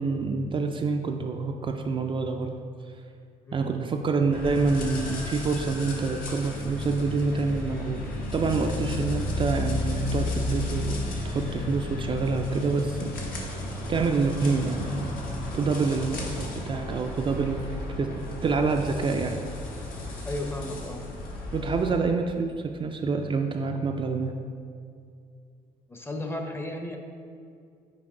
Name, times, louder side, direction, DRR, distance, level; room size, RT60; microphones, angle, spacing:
voice 1, 0.0-2.5 3.5-8.0 8.3-13.1 13.9-15.1 15.5-18.1 18.4-19.4 21.5-24.3, right 4 dB, 35° right, 4 dB, 0.4 m, -27 dB
voice 2, 3.4-3.7 20.2-21.0 25.9-27.0, left 1 dB, 15° left, 4 dB, 0.6 m, -34 dB
sound 1, 4.3-22.0, left 2 dB, 70° left, 1.1 m, -33 dB
5.9 x 4.3 x 3.7 m, 2.3 s
cardioid pair, 85°, 15 cm